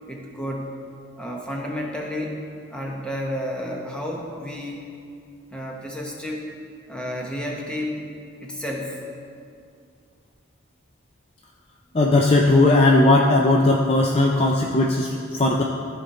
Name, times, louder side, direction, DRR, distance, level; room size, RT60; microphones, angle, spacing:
voice 1, 0.1-0.8 1.2-2.4 2.7-4.9 5.5-6.5 6.9-8.0 8.4-9.0, equal, 5° left, -1 dB, 0.9 m, -31 dB
voice 2, 11.9-15.6, left 2 dB, 30° left, 0 dB, 0.4 m, -18 dB
13.5 x 5.1 x 4.2 m, 2.3 s
head